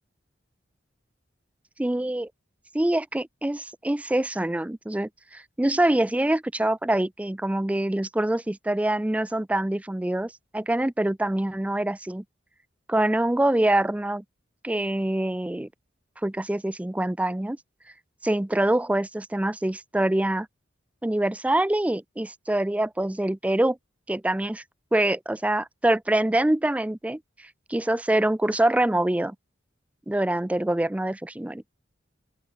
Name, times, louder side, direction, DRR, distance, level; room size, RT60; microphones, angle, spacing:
voice 1, 1.8-2.3 2.7-12.2 12.9-14.2 14.6-15.7 16.2-17.6 18.2-20.5 21.0-23.8 24.1-24.6 24.9-27.2 27.7-29.4 30.1-31.7, right 1 dB, 5° right, 0.4 m, -25 dB
open air
head